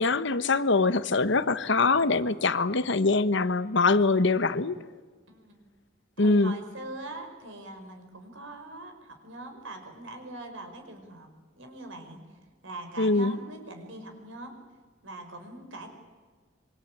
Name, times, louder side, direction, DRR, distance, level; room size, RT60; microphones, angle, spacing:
voice 1, 0.0-4.8 6.2-6.5 13.0-13.4, left 3 dB, 65° left, 13 dB, 1.1 m, -23 dB
voice 2, 5.3-5.7 6.2-11.3 11.6-14.6 15.0-15.9, right 2 dB, 85° right, 6 dB, 5.4 m, -42 dB
26.5 x 24.0 x 8.6 m, 1.5 s
head